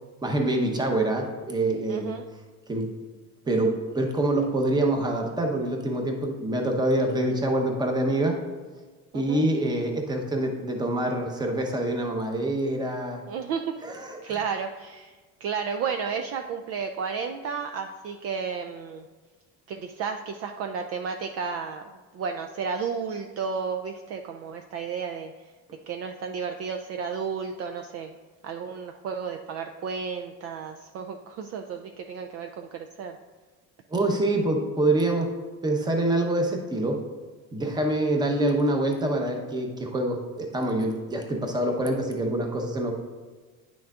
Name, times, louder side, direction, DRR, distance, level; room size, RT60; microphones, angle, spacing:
voice 1, 0.2-2.2 2.7-3.0 3.4-8.4 9.1-13.2 13.8-14.4 33.9-35.3 35.6-37.0 37.5-42.9, right 1 dB, 10° right, 3 dB, 0.8 m, -26 dB
voice 2, 1.9-2.2 9.1-9.4 13.3-13.7 14.2-19.0 19.7-21.8 22.1-25.3 25.9-28.1 28.4-33.2, right 6 dB, 45° right, 4 dB, 0.4 m, -32 dB
9.9 x 6.0 x 2.4 m, 1.4 s
cardioid pair, 145°, 34 cm